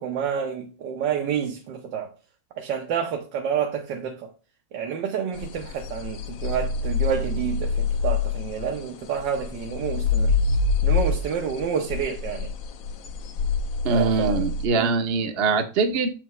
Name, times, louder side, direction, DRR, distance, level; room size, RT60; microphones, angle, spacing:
voice 1, 0.0-2.1 2.6-4.3 4.7-10.3 10.8-12.5 13.9-14.9, right 7 dB, 80° right, 1.5 m, -29 dB
sound 1, 5.4-8.8 9.2-14.7, left 4 dB, 65° left, 0.9 m, -25 dB
voice 2, 13.8-16.1, right 4 dB, 50° right, 0.8 m, -23 dB
7.2 x 5.8 x 3.1 m
omnidirectional pair, 1.9 m